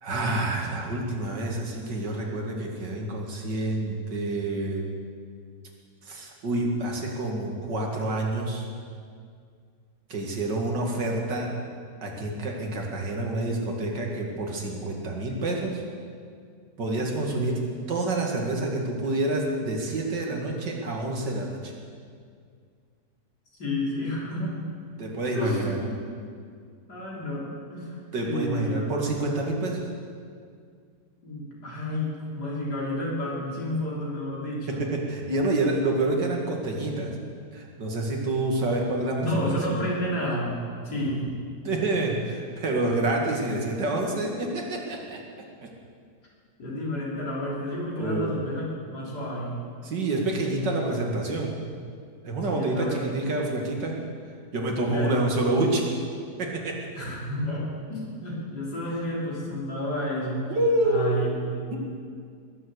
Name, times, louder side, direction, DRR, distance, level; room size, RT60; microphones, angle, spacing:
voice 1, 0.0-4.9 6.0-8.7 10.1-11.5 12.0-15.8 16.8-17.6 17.9-21.7 25.0-25.8 28.1-29.9 34.7-37.1 37.5-39.4 39.7-39.8 41.0-41.2 41.6-45.2 45.6-45.7 48.0-48.3 49.8-51.5 52.2-54.0 54.5-55.9 56.4-56.9 60.5-61.4, right 2 dB, 90° right, 0 dB, 2.7 m, -28 dB
voice 2, 23.6-24.6 25.3-25.9 26.9-28.8 31.2-34.9 39.2-40.6 40.8-41.3 46.6-49.6 52.5-53.2 54.9-55.2 57.0-60.6 60.8-61.6, equal, 70° left, -5 dB, 4.2 m, -31 dB
20.5 x 7.6 x 8.1 m, 2.2 s
omnidirectional pair, 1.8 m